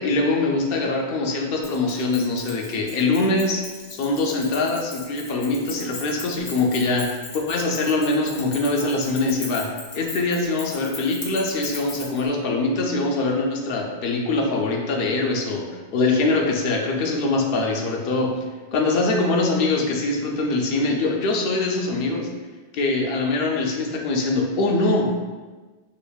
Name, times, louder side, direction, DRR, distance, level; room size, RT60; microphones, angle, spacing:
voice 1, 0.0-3.6 3.9-15.7 15.9-18.3 18.7-22.3 22.7-25.3, left 2 dB, 60° left, 1 dB, 0.7 m, -23 dB
Keys jangling, 1.6-12.3, left 3 dB, 85° left, 1.1 m, -38 dB
5.0 x 2.5 x 2.3 m, 1.3 s
omnidirectional pair, 1.2 m